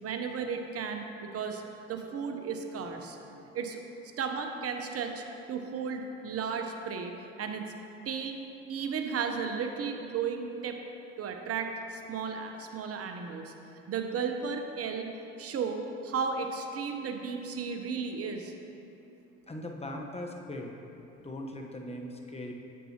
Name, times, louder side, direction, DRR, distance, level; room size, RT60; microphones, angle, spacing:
voice 1, 0.0-1.6 1.9-3.2 3.5-3.8 4.2-7.1 7.4-7.7 8.0-8.4 8.7-10.8 11.2-13.5 13.9-15.1 15.4-18.5, right 6 dB, 45° right, 5 dB, 0.9 m, -34 dB
voice 2, 19.5-20.8 21.2-22.5, left 1 dB, 20° left, 1 dB, 1.1 m, -39 dB
9.1 x 7.5 x 2.9 m, 2.9 s
hypercardioid pair, 65°, 32 cm